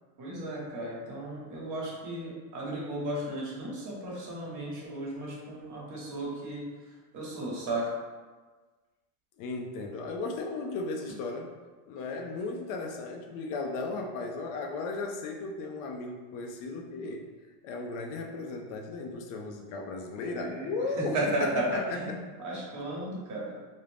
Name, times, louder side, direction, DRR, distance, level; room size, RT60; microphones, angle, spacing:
voice 1, 0.2-6.6 7.1-7.9 20.3-20.7 21.1-23.5, right 1 dB, 40° right, -5 dB, 1.1 m, -34 dB
voice 2, 9.4-11.5 11.9-17.2 17.6-22.2, left 3 dB, 45° left, 3 dB, 0.5 m, -36 dB
2.5 x 2.1 x 3.3 m, 1.4 s
supercardioid pair, 115°, 47 cm